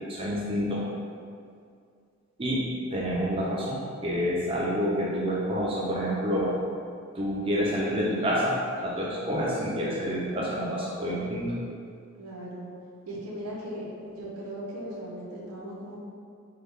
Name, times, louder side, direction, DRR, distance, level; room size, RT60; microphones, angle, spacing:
voice 1, 0.1-0.9 2.4-2.7 2.9-6.6 7.1-11.6 14.0-14.1 14.8-15.0, equal, 25° right, -6 dB, 0.5 m, -28 dB
voice 2, 12.2-12.7 13.1-13.8 14.2-16.0, right 1 dB, 90° right, -4 dB, 0.7 m, -38 dB
3.6 x 2.2 x 3.2 m, 2.3 s
head